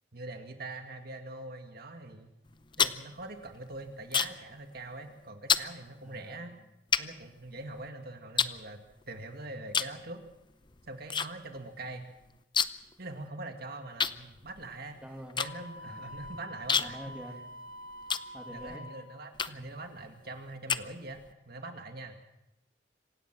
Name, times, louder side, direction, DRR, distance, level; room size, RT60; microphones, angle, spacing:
voice 1, 0.1-2.4 2.8-6.5 7.0-8.8 9.1-10.2 10.9-12.1 13.0-15.0 15.4-17.0 18.5-22.2, right 2 dB, 55° right, 5 dB, 2.1 m, -43 dB
sound 1, 2.5-4.5 4.8-5.1 5.5-5.7 6.3-6.4 6.9-7.9 8.4-9.2 9.7-10.0 10.3-11.3 11.6-11.7 11.9-12.9 13.2-13.3 14.0-18.8 19.3-19.8 20.3-21.3, left 6 dB, 25° left, 0.6 m, -31 dB
voice 2, 6.0-6.4 15.0-15.4 15.9-16.1 16.8-17.4 18.3-18.9, equal, 5° right, 2 dB, 2.6 m, -45 dB
Wind instrument woodwind instrument, 15.4-19.1, equal, 50° left, 5.2 m, -46 dB
26.0 x 17.0 x 6.1 m, 0.91 s
head